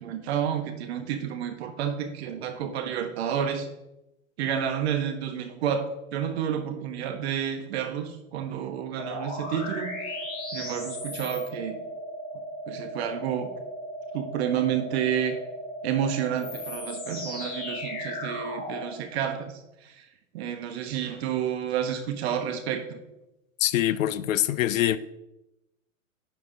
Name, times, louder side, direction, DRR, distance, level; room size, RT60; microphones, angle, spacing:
voice 1, 0.0-3.7 4.4-9.9 10.5-11.8 12.7-13.5 14.1-15.4 15.8-20.1 20.3-23.0, right 9 dB, 50° right, 1.0 m, -30 dB
sound 1, 9.0-18.9, equal, 20° left, 2.3 m, -36 dB
voice 2, 23.6-25.0, left 13 dB, 70° left, 0.5 m, -24 dB
10.0 x 5.3 x 2.7 m
hypercardioid pair, 145°, 41 cm